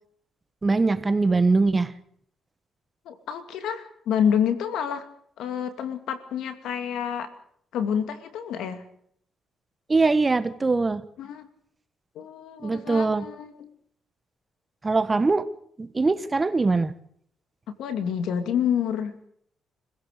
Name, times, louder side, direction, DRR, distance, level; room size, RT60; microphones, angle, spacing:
voice 1, 0.6-1.9 9.9-11.0 12.6-13.2 14.8-15.5 15.8-16.9, right 3 dB, 25° right, 13 dB, 1.3 m, -22 dB
voice 2, 3.0-5.0 5.4-7.3 7.7-8.8 11.2-11.5 12.1-13.6 17.7-19.2, left 8 dB, 80° left, 10 dB, 2.5 m, -28 dB
26.0 x 16.0 x 6.7 m, 0.65 s
cardioid pair, 90°, 0 cm